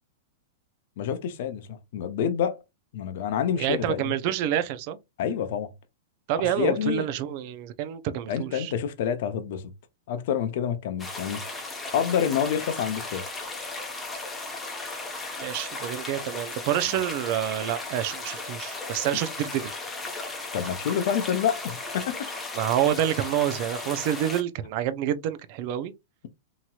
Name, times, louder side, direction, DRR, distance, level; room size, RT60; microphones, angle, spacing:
voice 1, 1.0-2.6 2.9-4.1 5.2-5.7 6.4-7.1 8.3-9.7 10.1-11.6 11.9-13.3 20.5-22.3, left 8 dB, 60° left, 0.6 m, -28 dB
voice 2, 3.6-5.0 6.3-8.7 15.4-19.7 22.5-25.9, right 11 dB, 50° right, 0.4 m, -28 dB
sound 1, 11.0-24.4, left 3 dB, 10° left, 0.7 m, -36 dB
2.9 x 2.8 x 2.3 m
hypercardioid pair, 145°, 0 cm